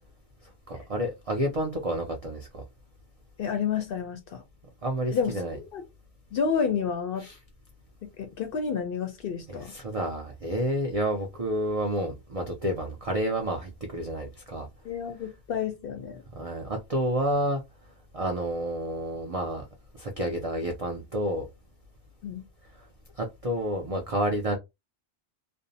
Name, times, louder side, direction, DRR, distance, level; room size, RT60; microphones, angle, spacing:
voice 1, 0.7-2.6 4.8-5.6 7.2-7.4 9.5-14.7 16.4-17.6 18.1-19.6 19.9-21.5 22.7-22.9 23.2-24.6, right 1 dB, 65° right, 0.3 m, -30 dB
voice 2, 3.4-4.4 5.1-5.8 6.3-7.3 8.0-9.7 14.8-16.2 22.2-22.4, left 6 dB, 60° left, 0.6 m, -30 dB
2.5 x 2.0 x 2.6 m
omnidirectional pair, 1.3 m